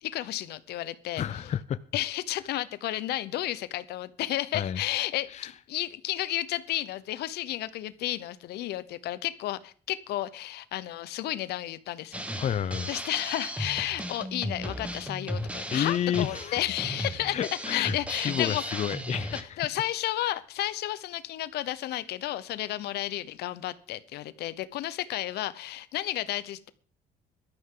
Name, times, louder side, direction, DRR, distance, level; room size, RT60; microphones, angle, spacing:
voice 1, 0.0-1.2 1.9-12.2 12.9-17.4 17.7-18.8 19.6-26.7, left 14 dB, 75° left, 0.9 m, -32 dB
voice 2, 1.2-1.8 4.5-4.8 5.3-5.5 12.4-12.9 15.7-16.6 17.2-19.6, left 9 dB, 40° left, 0.6 m, -30 dB
Drum kit, 12.1-19.4, equal, 5° right, 1.4 m, -36 dB
16.5 x 12.5 x 3.8 m
cardioid pair, 110°, 17 cm